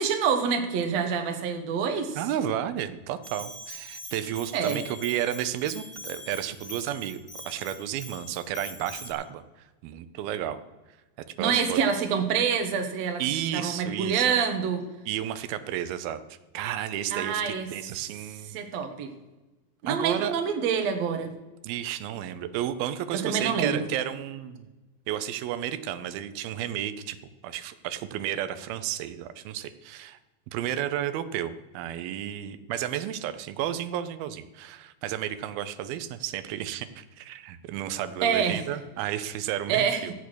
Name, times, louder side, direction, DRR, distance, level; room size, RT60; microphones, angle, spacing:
voice 1, 0.0-2.2 4.5-4.8 11.4-13.2 13.5-14.8 17.1-17.7 18.5-19.1 19.8-21.3 23.2-23.9 38.2-38.6 39.7-40.1, right 6 dB, 60° right, 6 dB, 2.1 m, -26 dB
voice 2, 2.2-7.2 7.5-9.4 9.8-10.6 11.4-11.8 13.2-14.4 15.1-16.2 16.5-18.5 19.9-20.3 21.6-24.7 25.1-27.2 27.4-30.2 30.5-40.1, right 11 dB, 90° right, 12 dB, 2.6 m, -32 dB
Bell, 3.2-9.1, left 1 dB, 10° left, 1.6 m, -43 dB
14.5 x 8.3 x 6.3 m, 1.1 s
omnidirectional pair, 4.2 m